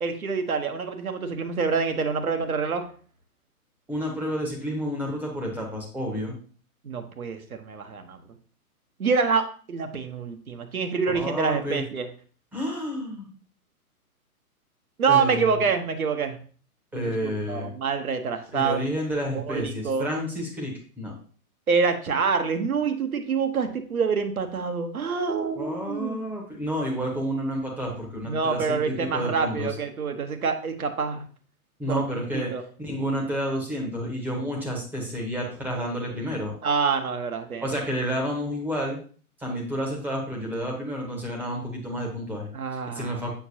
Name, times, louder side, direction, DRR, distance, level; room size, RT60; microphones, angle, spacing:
voice 1, 0.0-2.9 6.8-8.2 9.0-12.1 15.0-16.4 16.9-18.8 19.3-20.1 21.7-26.2 28.2-31.2 31.9-32.6 36.6-37.7 42.5-43.2, right 5 dB, 70° right, 6 dB, 1.0 m, -26 dB
voice 2, 3.9-6.4 11.1-11.8 12.5-13.3 15.1-15.6 16.9-17.7 18.5-21.1 25.6-29.7 31.8-32.5 32.8-36.5 37.6-39.0 39.4-42.5 42.9-43.3, equal, 5° right, -1 dB, 0.7 m, -30 dB
6.9 x 5.8 x 2.7 m, 0.41 s
figure-of-eight pair, 120°, 45 cm